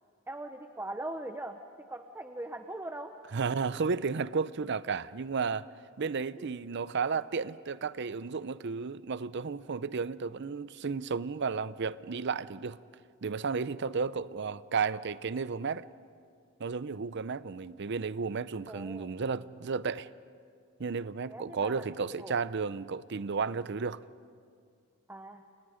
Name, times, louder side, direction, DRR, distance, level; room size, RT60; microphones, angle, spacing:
voice 1, 0.3-1.6 1.9-3.1 6.4-6.5 18.7-19.1 21.3-21.8 22.1-22.3 25.1-25.5, right 1 dB, 10° right, 0.8 m, -40 dB
voice 2, 3.3-5.7 6.0-12.8 13.2-15.9 16.6-20.1 20.8-24.0, right 5 dB, 55° right, 0.6 m, -33 dB
29.5 x 28.0 x 5.1 m
head